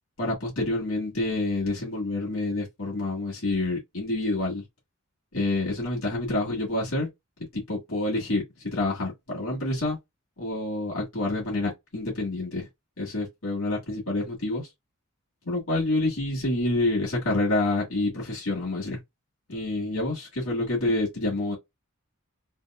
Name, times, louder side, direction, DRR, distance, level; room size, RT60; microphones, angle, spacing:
voice 1, 0.2-4.6 5.3-7.1 7.5-10.0 10.4-12.7 13.0-14.7 15.4-19.0 19.5-21.5, left 2 dB, 65° left, 1.7 m, -28 dB
3.5 x 2.7 x 2.3 m
head